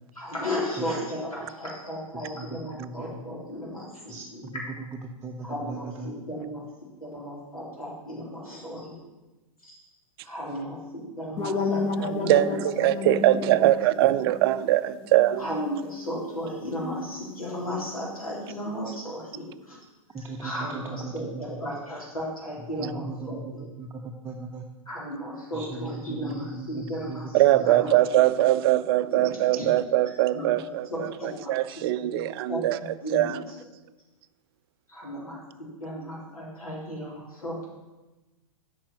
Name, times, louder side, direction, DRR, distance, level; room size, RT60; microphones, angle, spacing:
voice 1, 0.1-4.4 5.4-6.6 7.0-9.0 9.6-9.7 10.2-14.3 15.4-19.8 20.4-23.6 24.9-29.7 30.3-33.5 34.9-35.4 35.8-37.6, equal, 85° left, 3.6 m, -35 dB
voice 2, 2.1-3.2 4.1-4.2 4.5-6.1 14.0-14.1 20.1-21.6 22.6-24.7 25.5-28.0, right 3 dB, 15° right, 0.8 m, -38 dB
sound 1, 11.4-16.3, left 3 dB, 30° left, 1.2 m, -32 dB
voice 3, 12.2-15.5 27.3-31.1 31.5-32.8 33.1-33.4, right 15 dB, 45° right, 0.5 m, -22 dB
8.7 x 5.5 x 7.6 m
figure-of-eight pair, 110°, 18 cm